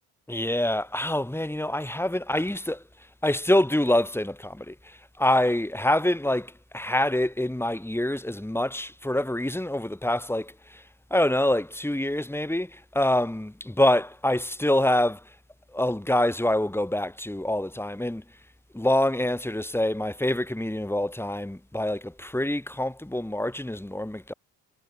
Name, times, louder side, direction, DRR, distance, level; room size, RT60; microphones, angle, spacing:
voice 1, 0.3-2.8 3.2-4.7 5.2-10.5 11.1-15.2 15.7-18.2 18.7-24.3, left 1 dB, 5° left, 7.2 m, -25 dB
supercardioid pair, 65°, 37 cm